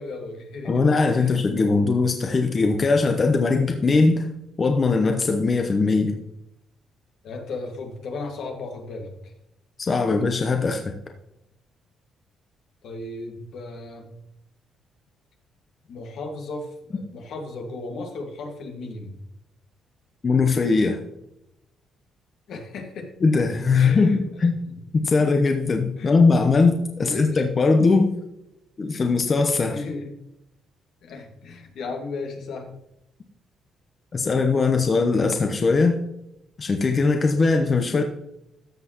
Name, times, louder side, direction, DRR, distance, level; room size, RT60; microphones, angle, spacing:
voice 1, 0.0-1.3 7.2-9.3 12.8-14.0 15.9-19.1 22.5-23.1 23.7-24.2 24.4-24.7 26.0-26.1 27.0-27.4 29.6-30.1 31.0-32.7, left 3 dB, 75° left, 3 dB, 1.9 m, -35 dB
voice 2, 0.6-4.3 4.6-6.2 9.8-10.8 20.2-21.0 23.2-24.6 24.9-28.1 28.8-29.8 34.1-36.0 36.6-38.0, left 4 dB, 40° left, 4 dB, 0.9 m, -20 dB
13.5 x 6.2 x 3.0 m, 0.84 s
cardioid pair, 90°, 0 cm